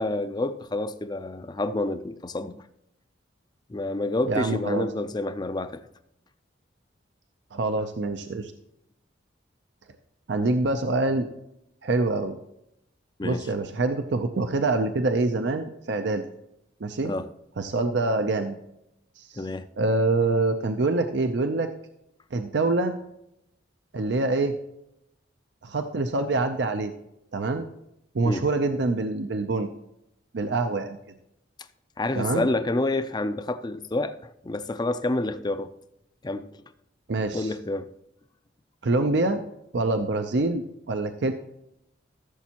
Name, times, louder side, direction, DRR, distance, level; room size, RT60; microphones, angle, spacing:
voice 1, 0.0-2.5 3.7-5.8 13.2-13.4 17.0-17.3 19.4-19.7 28.2-28.4 32.0-35.7 36.2-36.5 37.3-37.9, left 2 dB, 20° left, 0.5 m, -28 dB
voice 2, 4.3-4.9 7.5-8.5 10.3-11.3 11.8-12.4 13.2-16.3 16.8-17.1 17.6-18.6 19.2-19.5 19.8-21.7 22.3-22.9 23.9-24.6 25.6-26.9 27.3-27.7 28.1-29.7 30.3-31.0 32.2-32.5 37.1-37.5 38.8-39.4 39.7-41.3, right 2 dB, 65° right, 0.6 m, -25 dB
15.0 x 7.1 x 2.9 m
head